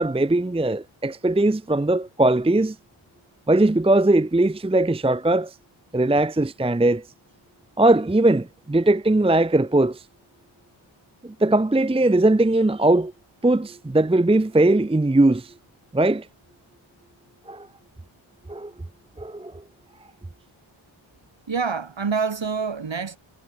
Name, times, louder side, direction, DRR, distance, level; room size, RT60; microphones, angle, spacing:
voice 1, 0.0-2.8 3.5-5.5 5.9-7.0 7.8-10.0 11.2-13.1 13.4-15.5 15.9-16.3 17.5-17.7 18.5-18.7 19.2-19.5, right 2 dB, 10° right, 0.7 m, -20 dB
voice 2, 21.5-23.2, right 5 dB, 65° right, 4.7 m, -26 dB
wide cardioid pair, 110°, 48 cm